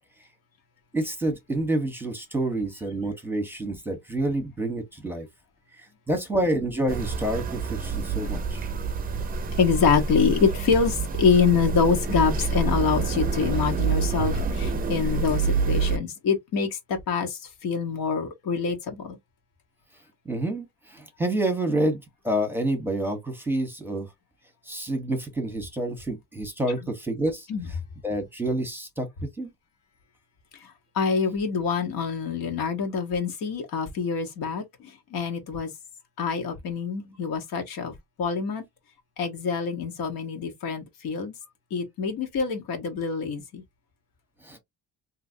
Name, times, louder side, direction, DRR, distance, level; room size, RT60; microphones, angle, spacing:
voice 1, 0.9-5.3 6.1-8.7 20.2-24.1 24.7-27.5 28.0-29.1 29.4-29.5 44.4-44.6, right 1 dB, 5° right, 0.9 m, -28 dB
sound 1, 6.9-16.0, right 4 dB, 25° right, 0.5 m, -27 dB
voice 2, 9.6-19.2 27.5-27.7 30.9-34.6 35.1-35.7 36.2-38.6 39.2-41.3 41.7-43.6, left 5 dB, 75° left, 1.3 m, -25 dB
3.3 x 2.8 x 2.6 m
cardioid pair, 135°, 34 cm